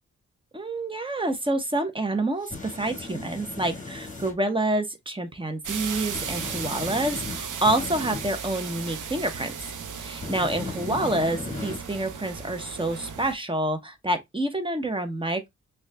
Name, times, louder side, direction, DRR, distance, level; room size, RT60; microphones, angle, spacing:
voice 1, 0.5-9.5 10.0-15.5, right 1 dB, 15° right, 1.0 m, -28 dB
sound 1, 2.4-4.3 6.1-8.4 10.2-11.8, left 4 dB, 25° left, 1.6 m, -37 dB
sound 2, 5.6-13.3, right 6 dB, 80° right, 0.8 m, -36 dB
6.2 x 2.6 x 2.2 m
cardioid pair, 85°, 30 cm